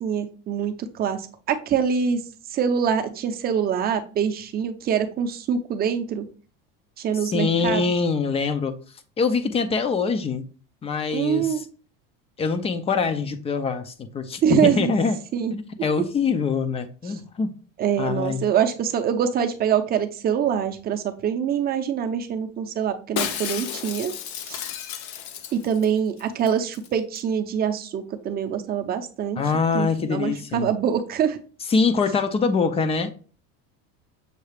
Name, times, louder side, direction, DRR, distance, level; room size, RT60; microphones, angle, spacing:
voice 1, 0.0-2.2 2.5-6.3 7.0-7.9 11.1-11.6 14.4-14.9 15.3-15.5 16.0-16.1 17.8-24.1 24.5-24.6 25.5-29.4 29.7-31.4, right 8 dB, 30° right, 0.6 m, -24 dB
voice 2, 7.2-8.8 9.2-10.5 10.8-11.6 12.4-15.2 15.5-17.5 18.0-18.5 29.4-30.7 31.7-33.1, left 5 dB, 20° left, 0.4 m, -24 dB
Shatter, 23.2-25.9 26.2-26.3 26.5-26.9 27.1-27.2, left 9 dB, 85° left, 0.6 m, -32 dB
6.6 x 2.3 x 3.2 m
cardioid pair, 130°, 31 cm